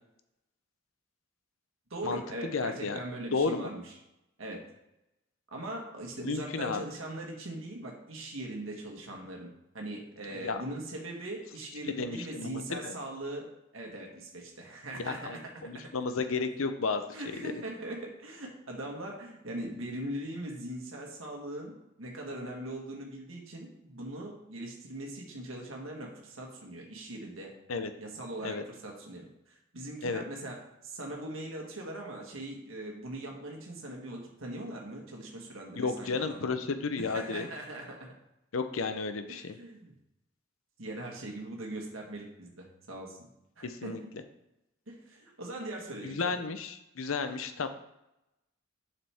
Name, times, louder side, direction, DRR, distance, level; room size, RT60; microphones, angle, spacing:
voice 1, 1.9-3.8 4.4-4.7 5.5-9.5 9.7-13.5 13.7-15.5 17.1-27.5 28.0-36.6 37.0-38.1 39.3-39.9 40.8-43.2 43.6-44.1 44.9-46.4, right 1 dB, 85° right, 0 dB, 1.5 m, -40 dB
voice 2, 2.5-3.0 3.3-3.7 6.2-6.8 10.3-10.6 11.8-12.9 15.0-17.0 17.4-17.5 27.7-27.9 28.4-28.6 30.0-30.2 35.8-37.5 38.5-39.5 43.6-44.0 46.0-47.7, left 4 dB, 85° left, 9 dB, 0.7 m, -32 dB
7.2 x 5.8 x 3.5 m, 0.87 s
head